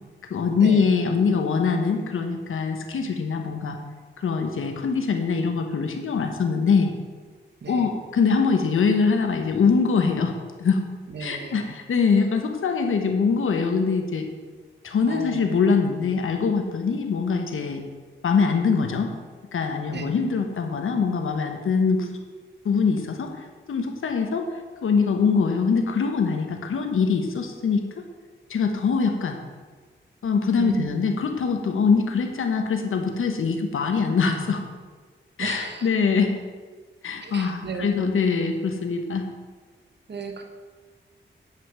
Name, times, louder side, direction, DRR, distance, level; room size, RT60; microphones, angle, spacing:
voice 1, 0.3-3.8 4.2-6.9 7.7-10.3 10.6-10.8 11.2-14.3 14.8-17.8 18.2-19.1 19.5-22.1 22.6-23.3 23.7-24.5 24.8-27.8 28.5-29.4 30.2-34.6 35.4-36.3 37.0-39.3, left 5 dB, 90° left, 5 dB, 1.2 m, -23 dB
voice 2, 11.1-11.7 15.1-15.5 19.9-20.1 30.6-30.9 35.4-35.9 37.2-38.1 40.1-40.4, right 4 dB, 55° right, 5 dB, 1.3 m, -34 dB
9.6 x 6.0 x 6.1 m, 1.4 s
cardioid pair, 75°, 20 cm